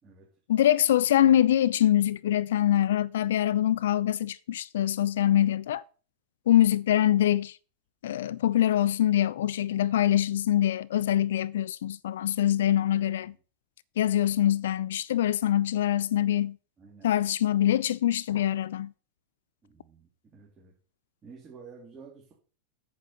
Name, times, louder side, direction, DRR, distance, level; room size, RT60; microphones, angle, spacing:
voice 1, 0.5-5.8 6.5-7.6 8.0-13.3 14.0-16.6 17.0-18.9, left 11 dB, 60° left, 0.4 m, -24 dB
voice 2, 16.8-17.1 19.6-20.7 21.2-22.3, right 5 dB, 20° right, 3.4 m, -50 dB
8.6 x 7.4 x 6.0 m
figure-of-eight pair, 90°, 0 cm